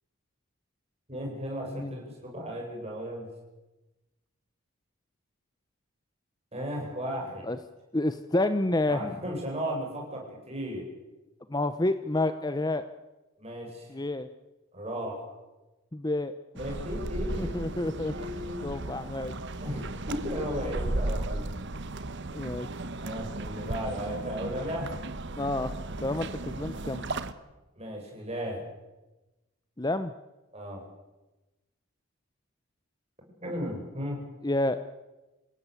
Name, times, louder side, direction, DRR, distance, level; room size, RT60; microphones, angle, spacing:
voice 1, 1.1-3.3 6.5-7.5 8.9-10.9 13.4-14.0 14.7-15.3 16.6-18.8 19.6-21.4 23.0-25.0 27.8-28.6 30.5-30.8 33.4-34.2, equal, 30° right, 0 dB, 7.5 m, -35 dB
voice 2, 7.9-9.2 11.5-12.9 13.9-14.3 15.9-16.3 17.4-18.1 18.6-19.3 22.3-22.7 25.4-25.7 26.0-27.1 29.8-30.1 34.4-34.8, left 2 dB, 20° left, 11 dB, 0.7 m, -29 dB
sound 1, 16.6-27.3, right 2 dB, 55° right, 1.2 m, -35 dB
27.5 x 16.5 x 8.4 m, 1.1 s
head